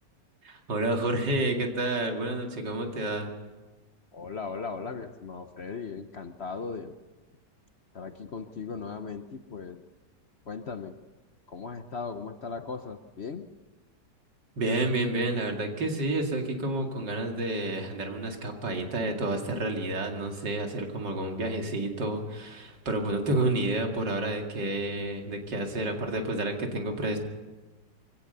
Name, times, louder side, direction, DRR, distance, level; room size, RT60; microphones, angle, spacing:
voice 1, 0.4-3.3 14.6-27.2, right 2 dB, 80° right, 3 dB, 3.0 m, -30 dB
voice 2, 4.1-7.0 7.9-9.8 10.5-11.0 11.5-13.5, left 5 dB, 45° left, 8 dB, 0.9 m, -38 dB
23.0 x 17.0 x 6.8 m, 1.2 s
omnidirectional pair, 1.9 m